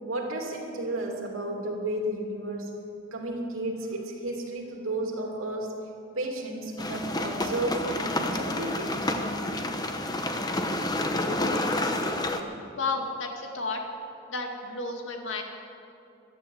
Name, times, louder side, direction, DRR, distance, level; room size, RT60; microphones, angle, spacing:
voice 1, 0.0-2.7 3.1-5.8 6.1-9.1, right 1 dB, 90° right, 0 dB, 2.9 m, -32 dB
sound 1, 6.8-12.4, left 1 dB, 20° left, 0.9 m, -29 dB
voice 2, 12.8-13.8 14.3-15.4, left 3 dB, 65° left, 2 dB, 2.1 m, -32 dB
15.0 x 12.0 x 7.9 m, 2.6 s
head